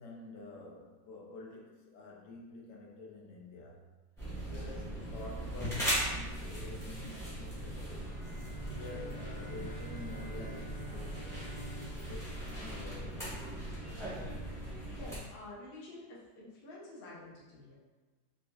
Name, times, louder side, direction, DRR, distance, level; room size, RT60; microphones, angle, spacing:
voice 1, 0.0-3.9 4.5-8.1 8.8-11.5 12.1-13.3, left 2 dB, 75° left, -2 dB, 1.2 m, -49 dB
sound 1, 4.2-15.2, right 1 dB, ahead, 0.7 m, -39 dB
Bowed string instrument, 8.0-13.5, right 3 dB, 50° right, 0.7 m, -51 dB
voice 2, 14.9-17.7, left 2 dB, 50° left, -5 dB, 0.7 m, -49 dB
4.0 x 2.5 x 2.3 m, 1.3 s
omnidirectional pair, 1.9 m